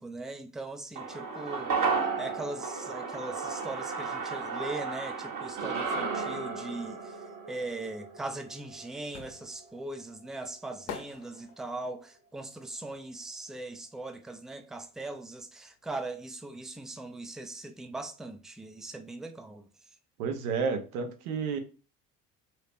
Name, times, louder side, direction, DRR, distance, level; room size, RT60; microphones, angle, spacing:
voice 1, 0.0-1.7 2.2-19.7, right 2 dB, ahead, 0.4 m, -40 dB
sound 1, 1.0-9.5 9.7-9.8, right 4 dB, 45° right, 1.0 m, -34 dB
sound 2, 9.1-14.1 14.4-16.0 16.2-16.3, left 7 dB, 70° left, 0.9 m, -46 dB
voice 2, 20.2-21.6, right 5 dB, 75° right, 0.8 m, -31 dB
2.8 x 2.8 x 3.4 m
hypercardioid pair, 60°, 44 cm